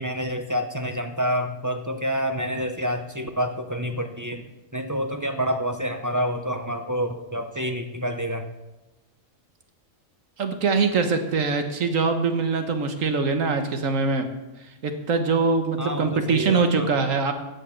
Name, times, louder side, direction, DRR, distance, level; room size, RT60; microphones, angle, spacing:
voice 1, 0.0-4.4 4.7-8.5 15.8-16.9, equal, 20° right, 6 dB, 0.6 m, -28 dB
voice 2, 10.4-14.3 14.8-17.3, right 4 dB, 80° right, 7 dB, 1.6 m, -23 dB
14.5 x 7.5 x 6.3 m, 1.1 s
omnidirectional pair, 1.3 m